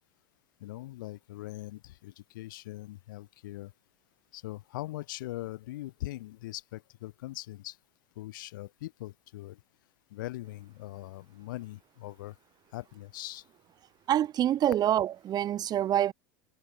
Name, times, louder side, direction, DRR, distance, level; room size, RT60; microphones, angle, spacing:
voice 1, 0.6-3.7 4.3-7.8 8.2-9.6 10.1-12.3 12.7-13.4, left 17 dB, 75° left, 1.7 m, -41 dB
voice 2, 14.1-16.1, right 11 dB, 40° right, 1.8 m, -26 dB
hypercardioid pair, 105°, 11 cm